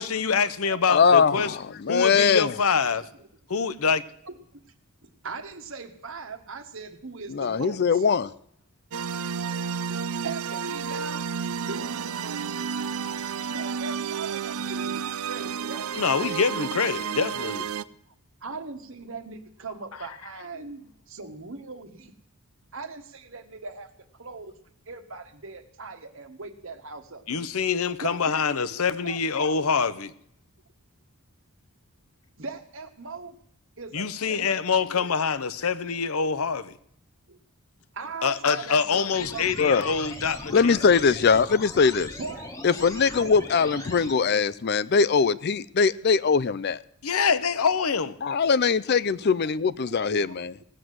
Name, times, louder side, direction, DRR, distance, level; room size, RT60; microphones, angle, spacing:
voice 1, 0.0-1.6 1.9-3.0 3.5-4.0 15.9-17.6 27.3-30.1 33.9-36.8 38.2-40.8 47.0-48.2, left 5 dB, 75° left, 0.8 m, -25 dB
voice 2, 0.9-2.5 7.3-8.3 39.6-39.9 40.5-42.1 42.6-46.8 48.2-50.5, left 5 dB, 45° left, 0.5 m, -21 dB
voice 3, 2.9-3.3 4.2-4.7 5.0-8.0 9.9-11.3 11.7-12.5 13.5-16.2 16.5-17.6 18.1-18.2 18.4-22.1 22.7-24.5 24.9-27.3 28.0-29.7 32.4-33.4 33.8-34.7 34.9-35.2 37.3-37.4 37.9-39.7 42.1-42.5 43.1-43.9 47.2-47.4 48.7-48.9 49.2-49.3 49.9-50.4, right 4 dB, 60° right, 1.4 m, -40 dB
sound 1, 8.9-17.8, right 7 dB, 75° right, 0.5 m, -31 dB
sound 2, 39.1-44.1, left 1 dB, 15° left, 1.2 m, -39 dB
18.0 x 7.7 x 7.8 m
head